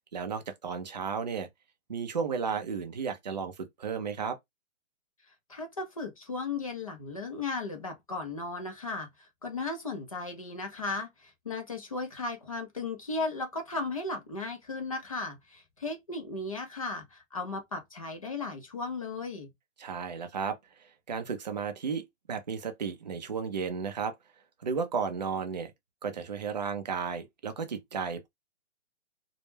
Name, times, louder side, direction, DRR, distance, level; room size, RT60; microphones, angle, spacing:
voice 1, 0.1-1.5 1.9-4.4 19.8-24.2 24.6-25.7 26.0-28.3, right 6 dB, 35° right, 0.4 m, -34 dB
voice 2, 5.5-19.5, left 3 dB, 30° left, 0.4 m, -36 dB
2.2 x 2.1 x 3.0 m
hypercardioid pair, 155°, 39 cm